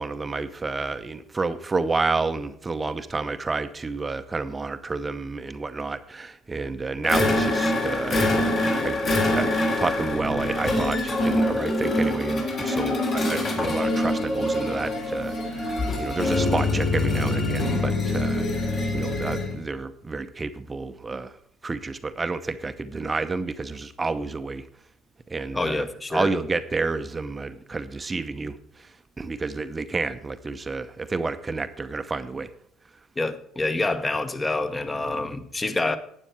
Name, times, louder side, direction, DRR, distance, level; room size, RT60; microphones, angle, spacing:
voice 1, 0.0-9.0 9.3-21.3 21.6-24.6 25.3-28.6 29.2-32.5, right 3 dB, 25° right, 10 dB, 0.7 m, -30 dB
sound 1, 7.0-19.6, left 1 dB, 50° left, 3.9 m, -24 dB
voice 2, 25.5-26.3 33.2-36.0, left 2 dB, 20° left, 11 dB, 1.1 m, -27 dB
12.0 x 8.9 x 4.4 m, 0.69 s
supercardioid pair, 75°, 0 cm